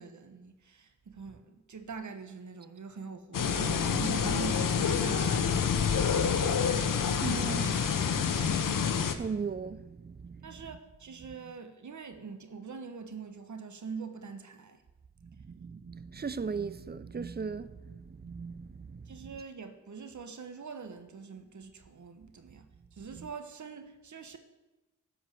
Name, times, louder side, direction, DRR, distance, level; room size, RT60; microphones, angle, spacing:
voice 1, 0.0-6.4 10.4-14.8 19.1-24.4, right 5 dB, 65° right, 1.3 m, -43 dB
sound 1, 3.3-9.1, left 7 dB, 80° left, 0.9 m, -28 dB
voice 2, 7.2-10.6 15.5-19.3 23.1-23.3, right 5 dB, 30° right, 0.6 m, -39 dB
13.0 x 4.9 x 7.5 m
cardioid pair, 55°, 32 cm